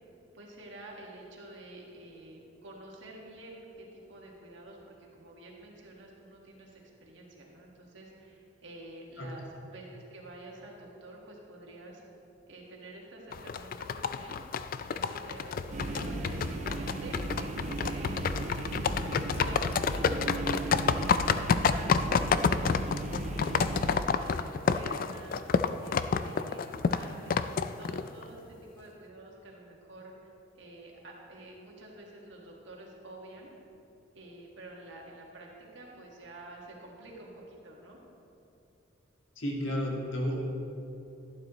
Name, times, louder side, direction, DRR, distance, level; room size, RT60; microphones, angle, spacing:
voice 1, 0.3-9.5 9.7-12.0 12.5-14.4 14.8-18.3 18.6-23.5 23.9-25.4 25.8-33.5 34.2-38.0, right 2 dB, 65° right, -2 dB, 1.7 m, -49 dB
sound 1, 13.3-28.2, left 6 dB, 45° left, 0.3 m, -29 dB
sound 2, 15.7-24.0, right 2 dB, 35° right, 0.4 m, -36 dB
voice 2, 39.4-40.4, equal, 70° left, -2 dB, 1.9 m, -32 dB
12.0 x 11.5 x 3.0 m, 2.9 s
head